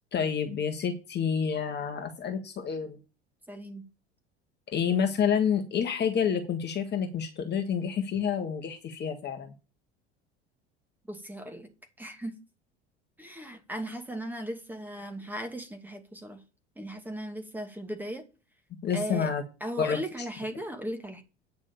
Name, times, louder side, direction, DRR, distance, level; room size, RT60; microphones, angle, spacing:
voice 1, 0.1-3.0 4.7-9.5 18.8-19.4 19.8-20.0, left 7 dB, 35° left, 1.7 m, -28 dB
voice 2, 3.5-3.9 11.1-11.7 12.0-12.4 13.2-16.4 16.8-18.3 18.9-19.3 19.6-21.2, equal, 5° right, 2.4 m, -37 dB
9.5 x 6.3 x 7.0 m
figure-of-eight pair, 70°, 32 cm